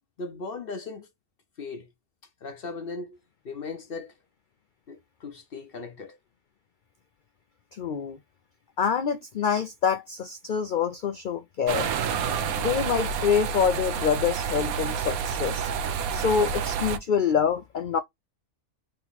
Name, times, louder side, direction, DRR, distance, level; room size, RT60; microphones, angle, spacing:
voice 1, 0.2-1.1 1.6-1.9 2.4-3.2 3.4-4.1 4.9-6.2, left 4 dB, 50° left, 0.8 m, -37 dB
voice 2, 7.7-8.2 8.8-11.9 12.6-15.7 16.1-18.0, left 7 dB, 80° left, 0.4 m, -26 dB
sound 1, 11.7-17.0, right 7 dB, 90° right, 1.1 m, -29 dB
3.8 x 3.0 x 4.0 m
omnidirectional pair, 1.4 m